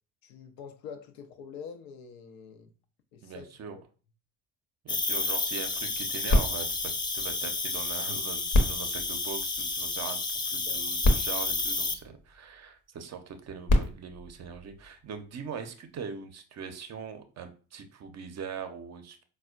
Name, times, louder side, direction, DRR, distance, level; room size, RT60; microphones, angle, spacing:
voice 1, 0.2-2.7 3.1-3.5 3.7-3.8 10.5-10.8, left 6 dB, 70° left, 0.6 m, -45 dB
voice 2, 3.2-3.8 4.8-19.2, right 6 dB, 40° right, 0.6 m, -41 dB
Cricket, 4.9-11.9, left 3 dB, 15° left, 0.3 m, -31 dB
sound 1, 6.3-7.9 8.5-10.1 10.7-10.8 11.0-12.6 13.4-15.3 16.0-16.1, left 1 dB, 50° left, 0.9 m, -29 dB
4.1 x 2.2 x 2.3 m
hypercardioid pair, 55°, 39 cm